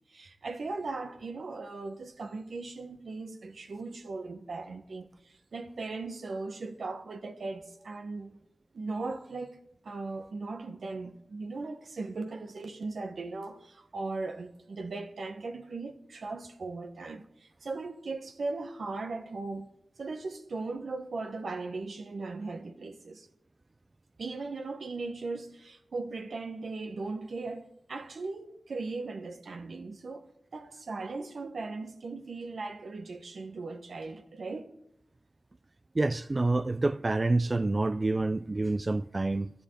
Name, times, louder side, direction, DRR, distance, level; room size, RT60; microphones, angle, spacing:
voice 1, 0.0-8.4 8.7-9.6 9.8-19.7 20.0-23.3 24.2-30.2 30.5-34.7, right 3 dB, 80° right, 1.2 m, -38 dB
voice 2, 36.0-39.5, right 2 dB, 40° right, 0.4 m, -27 dB
12.5 x 7.0 x 9.6 m
cardioid pair, 45°, 0 cm